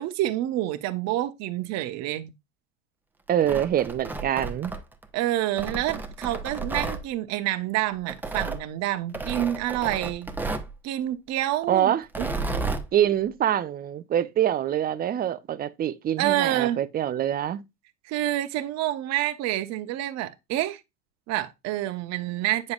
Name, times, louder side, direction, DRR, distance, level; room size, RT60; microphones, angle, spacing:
voice 1, 0.0-2.3 5.1-10.3 10.8-12.3 16.2-16.8 18.0-20.8 21.3-22.7, right 14 dB, 45° right, 1.0 m, -28 dB
Tearing, 3.3-5.1 5.6-7.0 8.1-8.6 9.1-10.7 12.0-12.8, right 3 dB, 5° right, 1.1 m, -32 dB
voice 2, 3.3-4.7 11.7-12.0 12.9-17.6, right 10 dB, 25° right, 0.6 m, -25 dB
9.4 x 5.3 x 2.4 m
hypercardioid pair, 80°, 38 cm